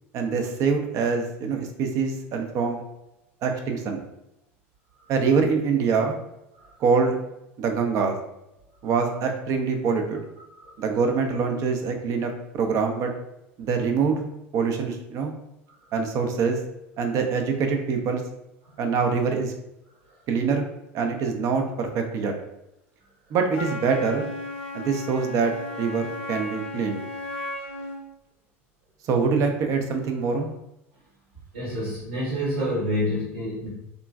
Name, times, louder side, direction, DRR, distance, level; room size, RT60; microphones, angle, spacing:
voice 1, 0.1-2.8 3.4-4.0 5.1-6.2 6.8-7.2 7.6-8.1 8.8-10.2 10.8-13.1 13.6-14.2 14.5-15.3 15.9-16.6 17.0-18.2 18.8-19.5 20.3-20.6 20.9-22.3 23.3-24.3 24.7-25.5 25.8-27.0 29.1-30.5, right 5 dB, 50° right, 4 dB, 0.5 m, -24 dB
Wind instrument woodwind instrument, 23.5-28.0, left 2 dB, 90° left, 0.6 m, -35 dB
voice 2, 31.5-33.7, equal, 80° right, -7 dB, 1.1 m, -28 dB
2.9 x 2.5 x 2.3 m, 0.86 s
hypercardioid pair, 75°, 7 cm